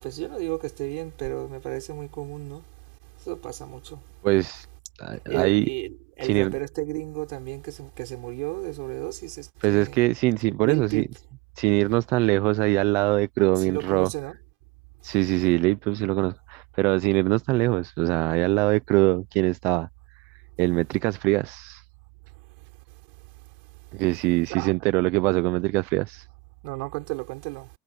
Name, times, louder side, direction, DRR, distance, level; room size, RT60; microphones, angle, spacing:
voice 1, 0.0-2.6 3.2-4.0 5.3-10.0 10.6-11.0 13.7-14.4 24.5-24.7 26.6-27.7, right 28 dB, 75° right, 4.7 m, -33 dB
voice 2, 4.2-4.7 5.0-5.7 6.2-6.5 9.6-11.1 11.6-14.1 15.0-19.9 20.6-21.8 23.9-26.2, right 22 dB, 50° right, 0.5 m, -23 dB
cardioid pair, 170°, 5 cm